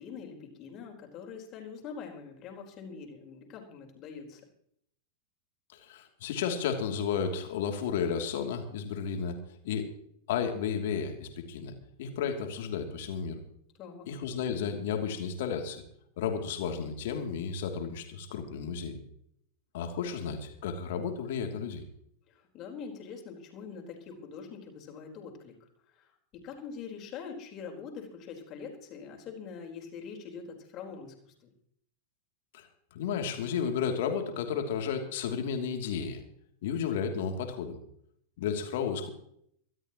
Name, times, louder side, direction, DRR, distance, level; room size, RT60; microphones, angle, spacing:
voice 1, 0.0-4.4 13.8-14.1 22.3-31.3, left 6 dB, 35° left, 1 dB, 4.4 m, -44 dB
voice 2, 5.7-9.4 9.6-9.9 10.3-11.7 12.0-13.4 14.1-15.8 16.2-19.0 19.7-21.8 32.5-36.2 36.6-37.8 38.4-39.1, left 7 dB, 55° left, 4 dB, 2.9 m, -33 dB
24.0 x 13.0 x 3.1 m, 0.68 s
figure-of-eight pair, 90°, 0 cm